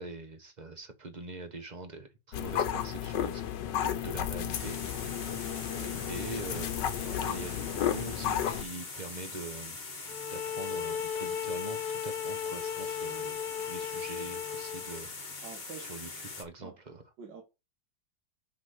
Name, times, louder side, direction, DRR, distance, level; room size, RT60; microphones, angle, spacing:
voice 1, 0.0-3.4 3.8-4.8 6.1-9.8 10.3-15.1 15.8-17.0, right 2 dB, 30° right, 1.2 m, -43 dB
sound 1, 2.3-8.6, left 10 dB, 90° left, 1.5 m, -33 dB
sound 2, 4.5-16.4, left 3 dB, 30° left, 1.5 m, -42 dB
voice 2, 5.7-6.1 15.4-15.9 16.6-16.8 17.2-17.4, right 6 dB, 90° right, 2.1 m, -47 dB
sound 3, 10.1-15.1, left 8 dB, 65° left, 1.5 m, -36 dB
6.3 x 5.7 x 6.2 m
omnidirectional pair, 1.9 m